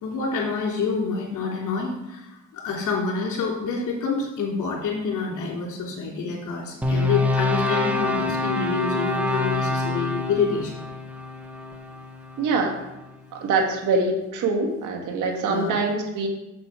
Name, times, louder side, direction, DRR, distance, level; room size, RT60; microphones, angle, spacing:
voice 1, 0.0-10.7 15.5-15.7, left 5 dB, 75° left, -2 dB, 3.0 m, -27 dB
sound 1, 6.8-13.0, left 2 dB, 5° right, 1.1 m, -26 dB
voice 2, 12.4-12.7 13.3-16.3, right 3 dB, 85° right, 1 dB, 1.8 m, -24 dB
7.4 x 7.4 x 4.7 m, 0.96 s
cardioid pair, 90°, 30 cm